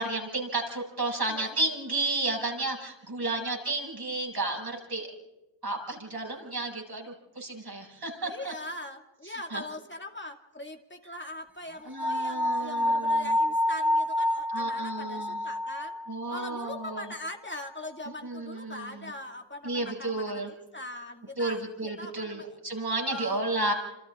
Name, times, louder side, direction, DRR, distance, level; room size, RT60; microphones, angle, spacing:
voice 1, 0.0-5.1 5.6-8.5 9.2-9.6 11.8-13.3 14.5-15.4 16.1-17.1 18.2-19.1 19.6-20.5 21.4-23.7, right 2 dB, 60° right, 0 dB, 7.3 m, -32 dB
voice 2, 8.3-16.0 16.3-22.5 23.1-23.4, left 1 dB, 25° left, 3 dB, 2.5 m, -41 dB
sound 1, 12.0-17.1, left 1 dB, 5° right, 1.7 m, -29 dB
28.0 x 27.5 x 3.8 m, 0.98 s
wide cardioid pair, 50°, 42 cm